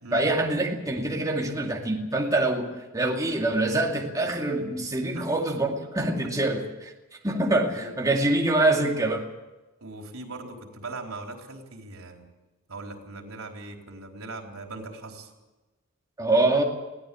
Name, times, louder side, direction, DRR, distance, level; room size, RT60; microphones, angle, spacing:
voice 1, 0.1-6.6 7.2-9.3 16.2-16.6, right 2 dB, 15° right, 0 dB, 2.4 m, -25 dB
voice 2, 9.8-12.3 12.7-15.3, right 2 dB, 85° right, 2 dB, 4.1 m, -40 dB
22.5 x 17.0 x 8.6 m, 1.1 s
head